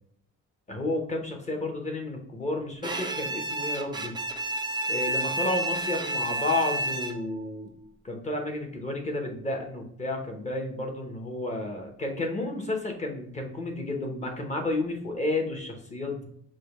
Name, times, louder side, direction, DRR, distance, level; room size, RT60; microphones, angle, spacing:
voice 1, 0.7-4.1 4.9-7.7 8.0-16.2, left 2 dB, 20° left, 2 dB, 0.9 m, -31 dB
Bowed string instrument, 2.8-7.4, right 1 dB, 15° right, 0.4 m, -30 dB
5.0 x 2.2 x 4.6 m, 0.66 s
cardioid pair, 155°, 32 cm